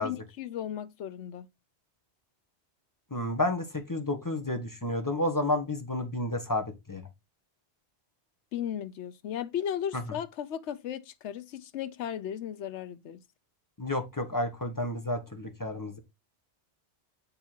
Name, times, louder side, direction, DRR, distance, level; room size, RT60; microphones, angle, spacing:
voice 1, 0.0-1.5 8.5-13.2, left 9 dB, 85° left, 1.0 m, -35 dB
voice 2, 3.1-7.0 13.8-16.0, left 1 dB, 20° left, 1.1 m, -31 dB
8.6 x 3.5 x 4.5 m
omnidirectional pair, 1.1 m